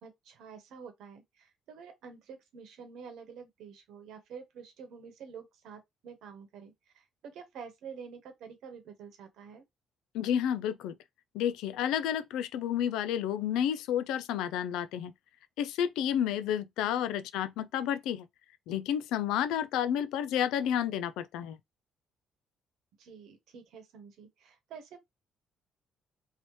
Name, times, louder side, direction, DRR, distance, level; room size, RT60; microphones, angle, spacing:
voice 1, 0.0-9.6 16.8-17.3 23.0-25.0, right 6 dB, 75° right, 1.0 m, -48 dB
voice 2, 10.1-10.9 11.3-15.1 15.6-18.2 18.7-21.6, left 9 dB, 90° left, 0.3 m, -30 dB
2.9 x 2.8 x 3.1 m
cardioid pair, 95°, 0 cm